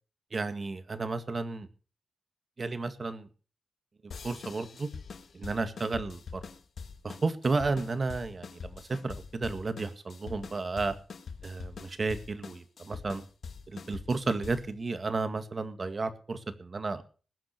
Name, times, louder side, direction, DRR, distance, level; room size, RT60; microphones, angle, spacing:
voice 1, 0.3-1.7 2.6-3.3 4.2-4.9 5.3-6.4 7.0-10.9 11.4-13.2 13.7-17.0, right 3 dB, 45° right, 10 dB, 2.0 m, -32 dB
sound 1, 4.1-14.8, left 5 dB, 85° left, 1.8 m, -44 dB
20.5 x 7.7 x 6.8 m, 0.39 s
wide cardioid pair, 90°, 0 cm